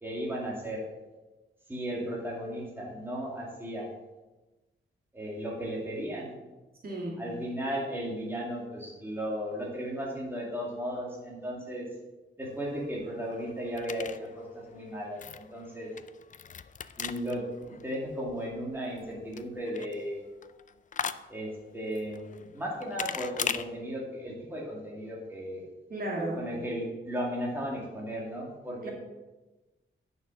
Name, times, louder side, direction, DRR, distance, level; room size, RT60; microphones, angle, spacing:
voice 1, 0.0-0.8 1.7-3.9 5.1-6.3 7.2-11.9 12.4-15.9 17.0-20.3 21.3-25.6 26.3-28.9, equal, 10° right, -3 dB, 2.3 m, -35 dB
voice 2, 6.8-7.2 25.9-26.4 28.8-28.9, right 1 dB, 45° right, -2 dB, 2.1 m, -33 dB
sound 1, 12.4-23.6, left 7 dB, 40° left, 0.4 m, -41 dB
9.3 x 6.3 x 7.0 m, 1.1 s
wide cardioid pair, 175°, 21 cm